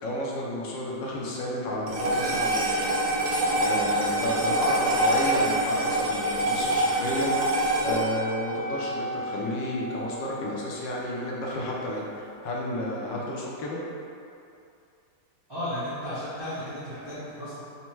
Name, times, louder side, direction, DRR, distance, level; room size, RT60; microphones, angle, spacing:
voice 1, 0.0-7.3 7.8-13.8, left 1 dB, 75° left, -4 dB, 1.3 m, -32 dB
sound 1, 1.9-10.4, right 1 dB, 65° right, 1.2 m, -26 dB
voice 2, 15.5-17.6, equal, 20° right, -12 dB, 0.6 m, -34 dB
4.2 x 2.1 x 4.4 m, 2.6 s
omnidirectional pair, 2.1 m